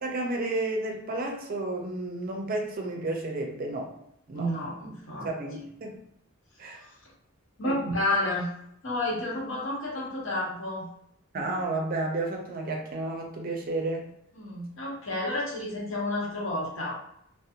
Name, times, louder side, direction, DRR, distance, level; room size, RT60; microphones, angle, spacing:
voice 1, 0.0-4.0 4.3-4.5 5.2-6.0 6.6-6.8 7.6-7.7 11.3-14.1, right 2 dB, 45° right, 1 dB, 0.5 m, -31 dB
voice 2, 4.3-5.3 6.7-6.9 7.6-8.5 8.8-10.9 14.3-16.9, left 1 dB, 70° left, -4 dB, 0.9 m, -30 dB
2.5 x 2.0 x 2.8 m, 0.76 s
head